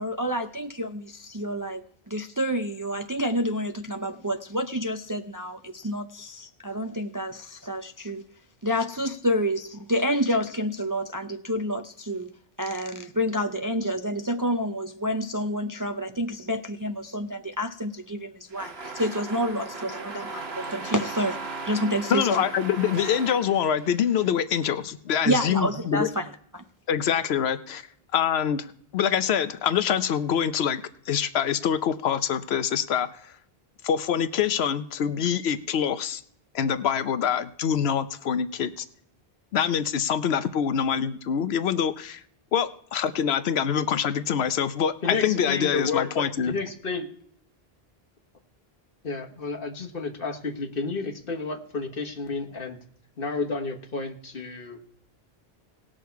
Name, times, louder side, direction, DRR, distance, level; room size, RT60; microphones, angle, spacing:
voice 1, 0.0-8.3 8.6-12.3 12.6-21.4 21.7-22.4 25.3-26.3 26.5-26.6, equal, 30° right, 5 dB, 0.4 m, -28 dB
sound 1, 18.5-24.3, right 3 dB, 80° right, 1.5 m, -37 dB
voice 2, 22.1-26.1 26.9-27.9 28.1-33.3 33.8-36.2 36.5-38.9 39.5-42.2 42.5-46.5, left 8 dB, 90° left, 12 dB, 0.9 m, -25 dB
voice 3, 45.0-47.1 49.0-52.8 53.2-54.8, left 4 dB, 60° left, 2 dB, 1.6 m, -31 dB
19.0 x 6.4 x 4.6 m, 0.65 s
omnidirectional pair, 1.0 m